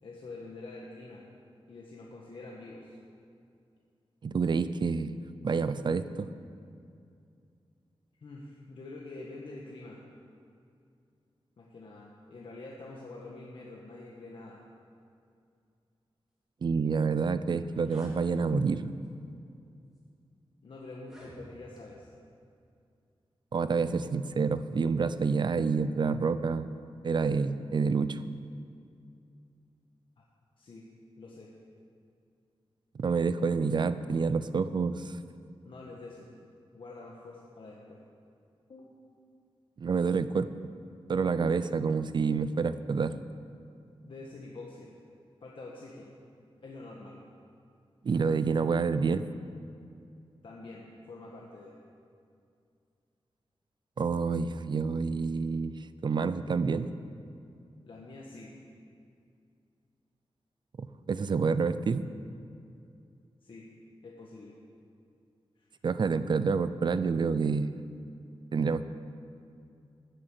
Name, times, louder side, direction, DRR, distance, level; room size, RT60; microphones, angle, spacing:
voice 1, 0.0-1.2 1.7-3.0 8.2-10.0 11.6-14.6 20.6-22.1 30.2-30.3 30.6-30.9 31.2-31.5 35.6-36.3 36.7-38.0 38.7-39.0 44.0-44.9 45.4-46.1 46.6-47.2 50.4-51.8 57.9-58.5 63.4-63.7 64.0-64.6 65.6-65.7, left 2 dB, 60° left, -3 dB, 1.4 m, -46 dB
voice 2, 4.2-6.3 16.6-18.9 23.5-26.7 27.0-28.2 32.9-35.2 39.8-40.5 41.1-43.2 48.0-49.3 54.0-56.9 60.8-62.1 65.8-67.7 68.5-68.8, right 5 dB, 50° right, 13 dB, 0.5 m, -28 dB
sound 1, 17.5-18.2 19.0-19.3 20.0-20.1 20.9-21.8, equal, 5° right, 3.0 m, -52 dB
14.5 x 8.2 x 7.8 m, 2.4 s
wide cardioid pair, 155°, 10 cm